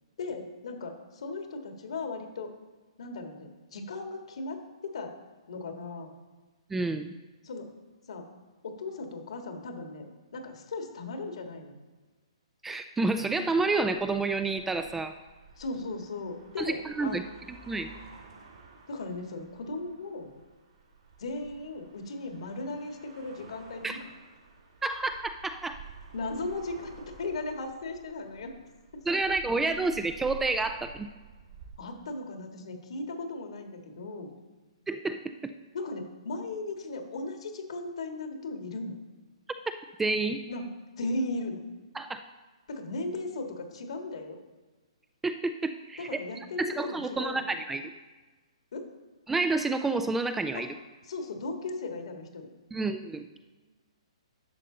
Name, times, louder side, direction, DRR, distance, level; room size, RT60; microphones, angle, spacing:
voice 1, 0.2-2.5 3.0-5.1 5.5-6.1 7.4-7.7 8.1-8.3 8.6-11.8 15.6-17.3 18.9-20.3 21.2-24.0 26.1-26.9 27.2-28.5 31.8-34.3 35.7-38.9 40.5-40.7 41.0-41.6 42.7-44.4 46.0-47.6 48.7-48.9 50.5-50.6 51.0-52.5, left 2 dB, 65° left, 4 dB, 1.6 m, -37 dB
voice 2, 6.7-7.1 12.6-15.1 16.6-17.2 17.7-17.9 23.8-24.0 24.8-25.8 29.1-31.1 34.9-35.5 40.0-40.4 41.9-42.2 45.2-46.1 46.6-47.8 49.3-50.7 52.7-53.3, right 3 dB, 5° right, 9 dB, 0.3 m, -29 dB
sound 1, 13.6-31.7, right 5 dB, 60° right, 2.4 m, -51 dB
11.0 x 6.4 x 3.9 m, 1.3 s
hypercardioid pair, 145°, 3 cm